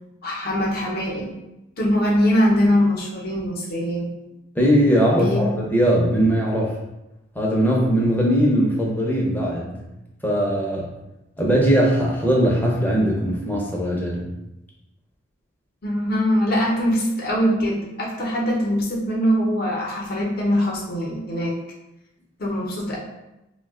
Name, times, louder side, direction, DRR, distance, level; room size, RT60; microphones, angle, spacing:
voice 1, 0.2-1.3 1.8-4.1 5.2-5.5 15.8-21.5 22.4-23.0, equal, 50° left, -2 dB, 0.7 m, -22 dB
voice 2, 4.6-6.7 7.4-9.8 10.2-10.9 11.4-14.3, equal, 10° left, -3 dB, 0.6 m, -20 dB
2.6 x 2.2 x 3.6 m, 0.93 s
head